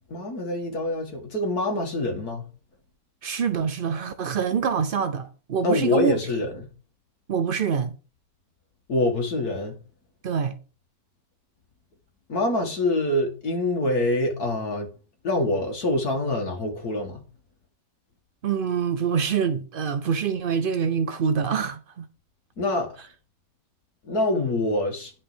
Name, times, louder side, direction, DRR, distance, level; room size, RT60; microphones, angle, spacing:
voice 1, 0.1-2.4 5.6-6.7 8.9-9.7 12.3-14.9 15.2-17.2 22.6-22.9 24.1-25.1, left 2 dB, 60° left, 2.6 m, -25 dB
voice 2, 3.2-6.1 7.3-7.9 10.2-10.6 18.4-22.1, right 7 dB, 80° right, 0.4 m, -25 dB
10.0 x 5.5 x 5.1 m
omnidirectional pair, 1.9 m